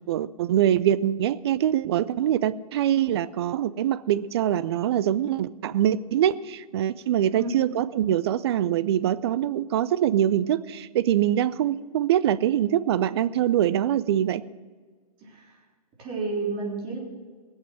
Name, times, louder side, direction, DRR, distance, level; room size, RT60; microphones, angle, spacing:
voice 1, 0.1-14.4, right 11 dB, 40° right, 16 dB, 0.5 m, -24 dB
voice 2, 15.2-15.5 16.0-17.0, right 3 dB, 25° right, -2 dB, 3.8 m, -31 dB
19.0 x 8.2 x 6.2 m, 1.5 s
figure-of-eight pair, 125°, 20 cm